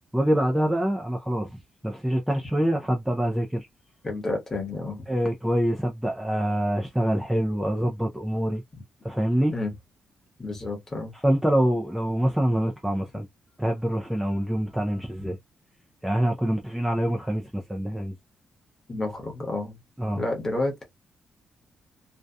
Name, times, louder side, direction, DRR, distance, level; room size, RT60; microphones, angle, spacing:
voice 1, 0.1-1.5 1.8-3.7 5.1-8.6 9.0-9.5 11.2-13.3 13.6-15.4 16.0-18.1 20.0-20.2, equal, 5° right, 0.4 m, -25 dB
voice 2, 4.0-5.0 9.5-9.7 10.4-11.1 18.9-19.8 20.1-20.9, left 2 dB, 20° left, 1.0 m, -30 dB
2.6 x 2.2 x 2.2 m
cardioid pair, 170°, 2 cm